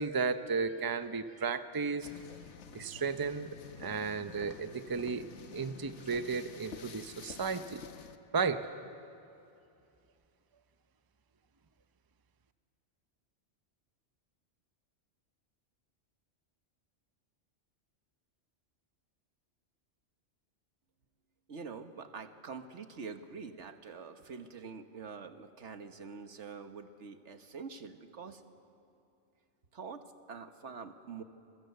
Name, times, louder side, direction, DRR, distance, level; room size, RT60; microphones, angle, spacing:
voice 1, 0.0-2.1 2.7-3.5 3.8-5.3 5.5-7.8 8.3-8.7, right 5 dB, 20° right, 10 dB, 0.7 m, -34 dB
sound 1, 2.0-8.2, left 6 dB, 85° left, 1.3 m, -49 dB
voice 2, 21.5-28.4 29.7-31.2, right 5 dB, 80° right, 8 dB, 1.5 m, -45 dB
28.5 x 22.5 x 8.1 m, 2.6 s
omnidirectional pair, 1.2 m